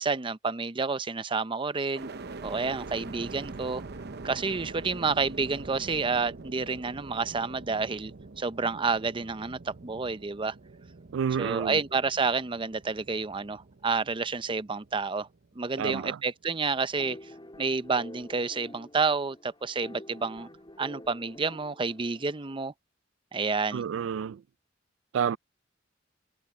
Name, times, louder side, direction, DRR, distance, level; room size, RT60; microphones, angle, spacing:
voice 1, 0.0-2.1 2.4-3.8 4.2-10.5 11.4-15.3 15.6-17.2 17.6-20.5 20.8-22.7 23.3-23.8, right 4 dB, 25° right, 0.6 m, -29 dB
sound 1, 1.9-16.0 16.5-17.2, right 3 dB, 60° right, 0.8 m, -44 dB
voice 2, 11.1-11.8 15.8-16.2 23.7-24.4 25.1-25.4, right 7 dB, 80° right, 0.3 m, -29 dB
sound 2, 17.0-22.7, left 1 dB, 25° left, 3.6 m, -48 dB
head